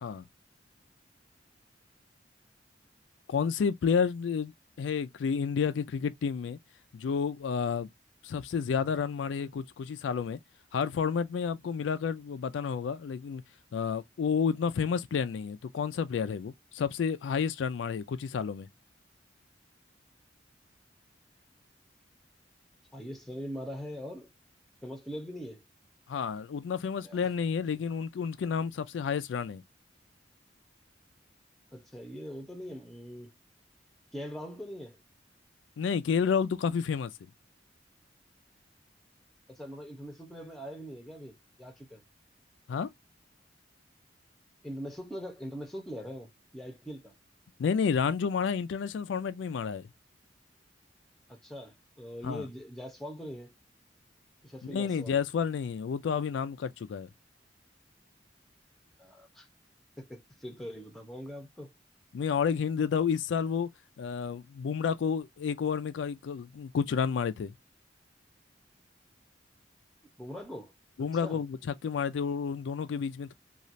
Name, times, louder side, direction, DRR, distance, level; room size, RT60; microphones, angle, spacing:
voice 1, 3.3-4.5 4.8-6.6 6.9-7.9 8.2-10.4 10.7-13.4 13.7-18.7 26.1-29.6 35.8-37.1 42.7-42.9 47.6-49.9 52.2-52.5 54.6-57.1 62.1-63.7 64.0-67.5 71.0-71.6 71.8-73.3, left 6 dB, 85° left, 0.3 m, -30 dB
voice 2, 22.9-24.3 24.8-25.6 27.0-27.3 31.7-33.3 34.1-35.0 39.5-42.0 44.6-47.1 51.3-53.5 54.4-55.2 59.0-59.5 60.0-61.7 70.2-70.7 71.2-71.4, equal, ahead, 0.7 m, -42 dB
3.1 x 2.4 x 2.5 m
head